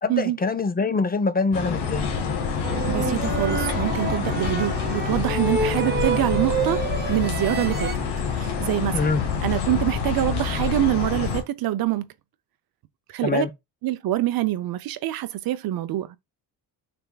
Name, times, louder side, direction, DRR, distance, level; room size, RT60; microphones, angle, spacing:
voice 1, 0.0-2.1 8.9-9.2 13.2-13.5, left 4 dB, 25° left, 0.6 m, -24 dB
sound 1, 1.5-11.4, left 6 dB, 85° left, 1.6 m, -27 dB
sound 2, 2.6-7.9, right 4 dB, 25° right, 0.7 m, -29 dB
voice 2, 2.9-6.8 7.1-7.9 8.4-9.1 9.4-12.1 13.1-13.5 13.8-16.2, right 14 dB, 65° right, 0.6 m, -25 dB
6.8 x 3.5 x 2.3 m
cardioid pair, 115°, 39 cm